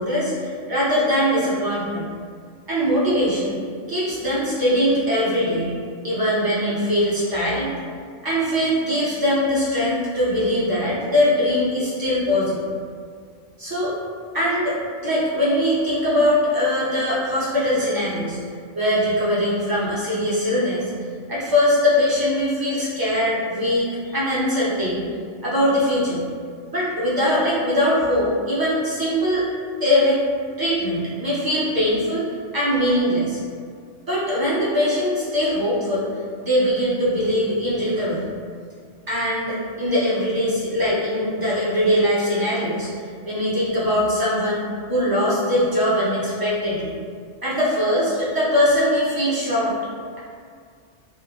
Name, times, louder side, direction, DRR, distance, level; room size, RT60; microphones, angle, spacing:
voice 1, 0.0-2.0 2.7-3.6 3.9-5.8 6.0-7.7 8.2-12.7 13.6-13.9 14.3-18.4 18.7-20.8 21.3-25.1 25.4-26.2 26.7-29.5 29.8-30.2 30.6-32.2 32.5-33.4 34.0-36.1 36.4-38.2 39.1-42.9 43.3-46.9 47.4-49.7, equal, 35° right, -8 dB, 0.4 m, -21 dB
2.2 x 2.1 x 3.5 m, 2.1 s
omnidirectional pair, 1.2 m